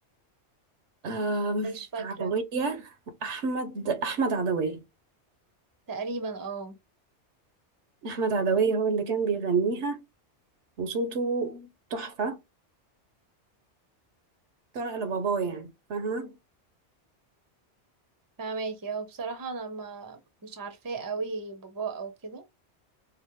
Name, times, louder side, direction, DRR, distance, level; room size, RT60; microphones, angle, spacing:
voice 1, 1.0-1.7 2.0-2.9 3.2-4.8 8.0-10.0 10.8-12.4 14.7-16.3, right 4 dB, 75° right, 1.1 m, -28 dB
voice 2, 1.6-2.4 5.9-6.8 18.4-22.4, right 4 dB, 20° right, 0.6 m, -35 dB
4.8 x 2.1 x 3.0 m
omnidirectional pair, 1.2 m